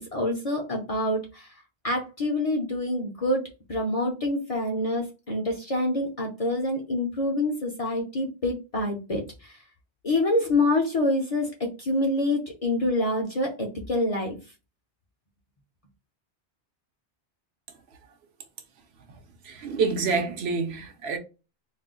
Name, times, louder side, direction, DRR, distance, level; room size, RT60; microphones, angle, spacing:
voice 1, 0.1-1.5 1.8-3.4 3.7-9.6 10.0-14.4, left 1 dB, 45° left, 0.5 m, -26 dB
voice 2, 19.4-21.2, right 4 dB, 75° right, 0.8 m, -27 dB
2.4 x 2.2 x 3.6 m
omnidirectional pair, 1.1 m